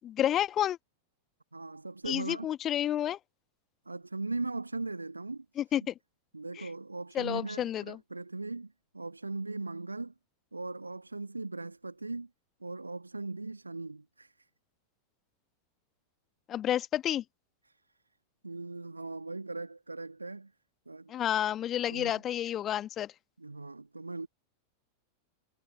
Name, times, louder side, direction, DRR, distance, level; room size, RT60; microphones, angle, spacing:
voice 1, 0.0-0.8 2.1-3.2 5.6-5.9 6.6-6.7 7.1-8.0 16.5-17.2 21.1-23.1, left 11 dB, 30° left, 1.5 m, -30 dB
voice 2, 1.5-2.5 3.8-5.4 6.3-10.1 10.5-12.3 12.6-14.3 17.7-17.8 18.4-20.5 20.9-21.1 21.9-22.2 23.4-24.3, right 3 dB, 80° right, 1.5 m, -39 dB
figure-of-eight pair, 90°, 0 cm